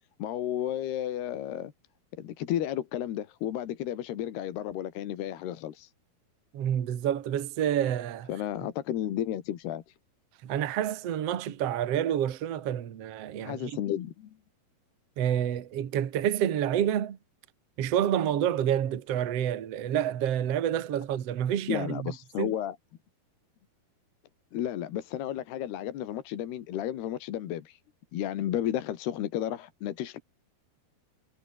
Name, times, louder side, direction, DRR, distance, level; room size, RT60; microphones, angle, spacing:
voice 1, 0.2-1.7 2.2-5.9 8.3-9.8 13.4-14.3 21.7-22.8 24.5-27.8 28.1-30.2, left 11 dB, 80° left, 3.8 m, -32 dB
voice 2, 6.5-8.3 10.4-13.8 15.2-17.2 17.8-22.5, right 10 dB, 50° right, 2.2 m, -28 dB
omnidirectional pair, 4.6 m